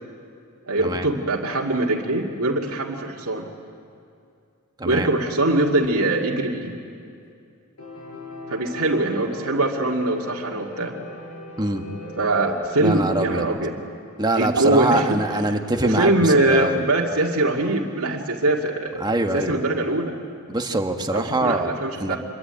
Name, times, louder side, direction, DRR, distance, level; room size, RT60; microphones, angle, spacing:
voice 1, 0.7-3.5 4.8-6.8 8.5-11.0 12.2-13.8 14.4-15.2 15.5-19.1 19.3-20.2 21.1-22.2, right 2 dB, 85° right, -2 dB, 2.3 m, -22 dB
Piano, 7.8-13.4, left 2 dB, 80° left, 7.4 m, -38 dB
voice 2, 11.6-11.9 12.8-13.5 14.2-16.8 19.0-19.6 20.5-21.7 22.0-22.2, right 2 dB, 20° right, 5 dB, 1.6 m, -24 dB
27.0 x 23.0 x 9.0 m, 2.5 s
head